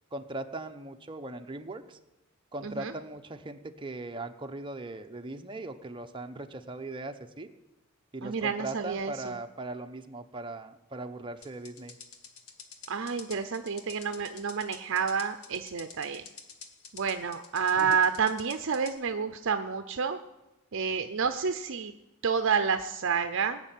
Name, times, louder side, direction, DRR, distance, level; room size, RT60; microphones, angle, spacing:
voice 1, 0.1-2.0 2.5-7.5 8.1-12.0 17.8-18.0, right 2 dB, 25° right, 6 dB, 0.9 m, -39 dB
voice 2, 8.2-9.3 12.9-16.3 16.9-20.2 20.7-21.9 22.2-23.6, right 6 dB, 60° right, 9 dB, 0.6 m, -29 dB
sound 1, 11.4-19.0, left 6 dB, 65° left, 1.6 m, -48 dB
19.5 x 6.8 x 9.1 m, 0.98 s
head